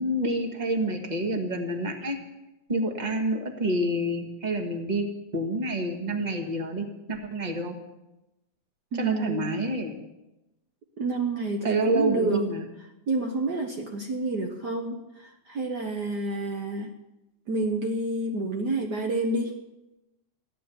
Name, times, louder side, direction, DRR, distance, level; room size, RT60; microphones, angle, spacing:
voice 1, 0.0-2.2 2.7-5.1 5.3-7.8 9.0-10.0 11.6-12.6, right 1 dB, 25° right, 4 dB, 1.0 m, -28 dB
voice 2, 8.9-9.5 11.0-12.5 13.1-16.9 17.5-19.6, right 2 dB, 85° right, 4 dB, 0.9 m, -29 dB
15.5 x 11.0 x 7.0 m, 0.98 s
omnidirectional pair, 3.4 m